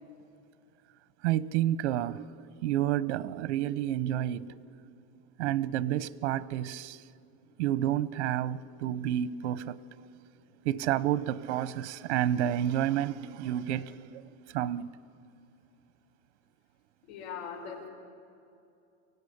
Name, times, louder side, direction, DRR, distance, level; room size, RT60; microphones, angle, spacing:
voice 1, 1.2-4.6 5.4-7.0 7.6-9.8 10.6-14.9, right 11 dB, 85° right, 19 dB, 0.9 m, -30 dB
voice 2, 17.0-17.9, left 6 dB, 70° left, 0 dB, 5.1 m, -40 dB
24.0 x 16.5 x 10.0 m, 2.5 s
supercardioid pair, 165°, 34 cm